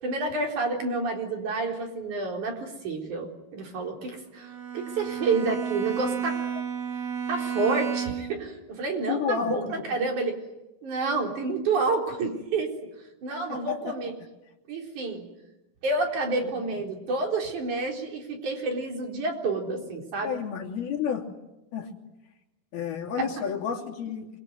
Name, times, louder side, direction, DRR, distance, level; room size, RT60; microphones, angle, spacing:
voice 1, 0.0-6.4 7.3-10.4 10.8-12.7 13.2-14.1 14.7-15.2 15.8-20.4 23.2-23.3, right 3 dB, 55° right, 2 dB, 5.5 m, -29 dB
Bowed string instrument, 4.4-8.4, right 8 dB, 80° right, 6.0 m, -32 dB
voice 2, 9.1-9.8 13.5-14.0 16.4-16.5 20.2-21.3 21.7-21.9 22.7-24.3, left 7 dB, 80° left, 0 dB, 4.9 m, -31 dB
27.5 x 22.5 x 9.3 m, 0.96 s
omnidirectional pair, 4.3 m